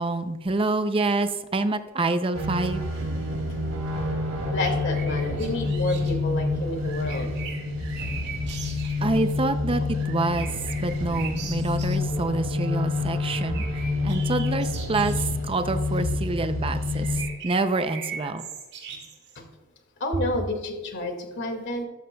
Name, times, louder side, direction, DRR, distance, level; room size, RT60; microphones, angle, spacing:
voice 1, 0.0-2.8 8.5-8.6 9.0-10.5 10.8-13.6 14.0-17.1 17.4-18.4, right 2 dB, 25° right, 9 dB, 0.5 m, -26 dB
sound 1, 2.3-17.2, left 3 dB, 85° right, 3.0 m, -28 dB
voice 2, 4.4-7.3 18.9-19.0 20.0-21.8, left 1 dB, 55° left, 4 dB, 2.1 m, -30 dB
sound 2, 4.6-6.1 6.8-9.1 9.9-12.0 13.2-15.3 16.9-19.4, right 6 dB, 55° right, 1.8 m, -40 dB
13.5 x 12.5 x 2.3 m, 1.1 s
head